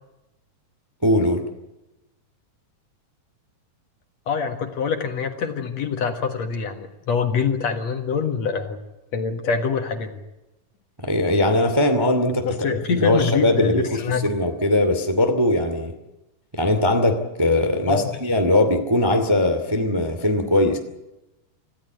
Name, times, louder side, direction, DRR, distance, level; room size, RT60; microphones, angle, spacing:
voice 1, 1.0-1.4 11.0-12.5 12.9-15.9 16.5-20.8, left 1 dB, 10° right, 5 dB, 1.5 m, -20 dB
voice 2, 4.3-8.8 9.1-10.2 12.4-14.2 17.9-18.1, left 6 dB, 60° left, 6 dB, 2.6 m, -25 dB
26.5 x 15.0 x 9.3 m, 0.98 s
omnidirectional pair, 3.9 m